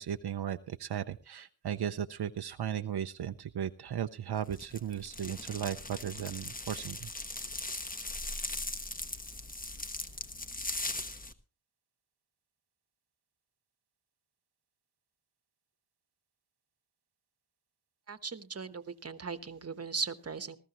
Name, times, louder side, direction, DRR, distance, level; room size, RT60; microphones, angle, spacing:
voice 1, 0.0-7.1, right 9 dB, 75° right, 9 dB, 0.6 m, -36 dB
sound 1, 4.5-11.3, left 2 dB, 20° left, 1.1 m, -39 dB
voice 2, 18.1-20.6, right 5 dB, 40° right, 12 dB, 1.2 m, -38 dB
20.0 x 14.0 x 3.0 m, 0.33 s
wide cardioid pair, 75°, 40 cm